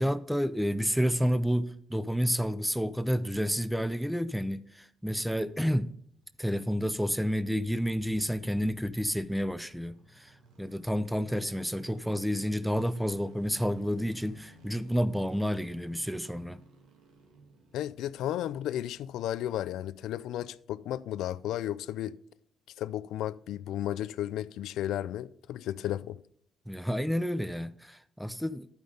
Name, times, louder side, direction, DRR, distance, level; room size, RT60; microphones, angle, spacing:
voice 1, 0.0-5.9 6.4-16.6 26.7-28.7, equal, ahead, 0.4 m, -30 dB
sound 1, 5.9-20.7 21.0-21.1, right 3 dB, 90° right, 1.9 m, -58 dB
voice 2, 17.7-22.2 22.8-26.2, left 12 dB, 85° left, 0.3 m, -34 dB
11.5 x 5.2 x 5.1 m
cardioid pair, 90°, 0 cm